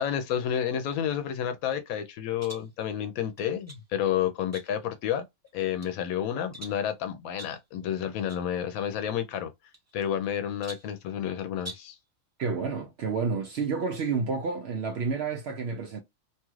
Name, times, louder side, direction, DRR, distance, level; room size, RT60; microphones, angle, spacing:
voice 1, 0.0-5.2 5.5-9.5 9.9-12.0, left 9 dB, 90° left, 1.0 m, -30 dB
sound 1, 2.4-2.7 3.4-3.9 4.5-5.0 5.5-6.0 6.5-6.9 7.4-7.7 8.3-8.5 8.7-8.8 9.7-10.3 10.6-11.0 11.6-12.0, right 1 dB, 20° right, 0.4 m, -45 dB
voice 2, 12.4-16.0, right 5 dB, 65° right, 0.7 m, -30 dB
2.9 x 2.3 x 3.0 m
omnidirectional pair, 1.4 m